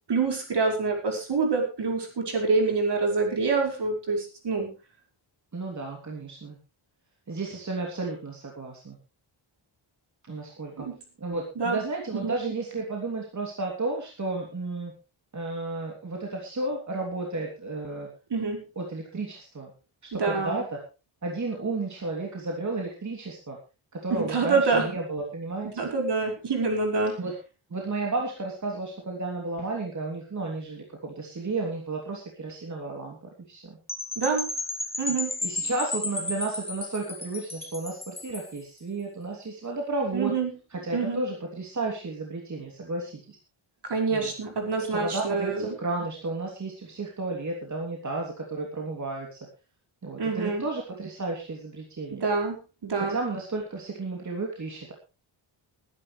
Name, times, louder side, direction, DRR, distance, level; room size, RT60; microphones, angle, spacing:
voice 1, 0.1-4.7 10.8-10.9 11.6-11.8 12.1-12.3 18.3-18.6 20.1-20.6 24.1-24.9 25.8-27.2 34.2-34.5 35.0-35.3 40.1-40.5 40.9-41.2 43.8-45.7 50.2-50.6 52.1-52.6 52.8-53.2, right 4 dB, 55° right, 2 dB, 5.3 m, -26 dB
voice 2, 5.5-6.6 7.3-9.0 10.3-10.9 11.2-14.9 15.3-18.1 18.8-19.7 20.1-20.8 21.2-23.6 23.9-25.7 27.2-27.3 27.7-33.8 35.4-40.3 40.7-43.4 44.1-44.3 44.9-49.4 50.0-52.2 53.0-54.9, right 3 dB, 35° right, 0 dB, 3.1 m, -32 dB
Percussion / Wind chime, 33.9-38.6, left 2 dB, 10° left, 2.2 m, -33 dB
21.5 x 11.0 x 3.3 m, 0.31 s
wide cardioid pair, 135°, 49 cm